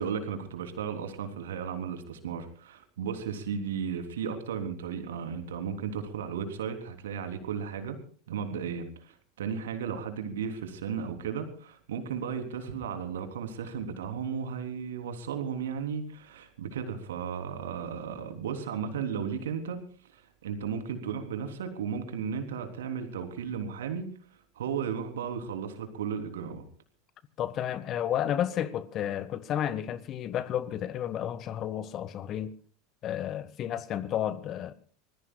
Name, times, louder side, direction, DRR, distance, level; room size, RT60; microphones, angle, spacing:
voice 1, 0.0-8.0 8.3-19.8 20.1-24.1 24.6-26.6, right 7 dB, 70° right, 3.5 m, -35 dB
voice 2, 27.4-32.5 33.0-34.7, left 10 dB, 40° left, 1.5 m, -32 dB
25.5 x 20.5 x 2.4 m
figure-of-eight pair, 80°, 0 cm